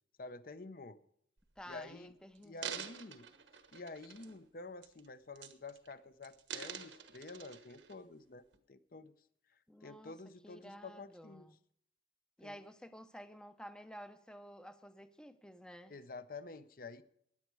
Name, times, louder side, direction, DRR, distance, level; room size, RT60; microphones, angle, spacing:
voice 1, 0.2-1.0 1.7-2.1 2.4-3.3 3.7-9.1 9.8-11.5 12.4-12.6 15.9-17.0, left 3 dB, 50° left, 0.7 m, -49 dB
sound 1, 1.4-1.7 2.3-4.5 4.8-5.1 5.4-5.9 6.2-7.9 8.5-8.6, right 8 dB, 90° right, 1.4 m, -47 dB
voice 2, 1.6-2.9 9.7-10.1 10.4-11.6 12.4-15.9, equal, 5° left, 0.6 m, -52 dB
16.0 x 10.5 x 4.7 m
head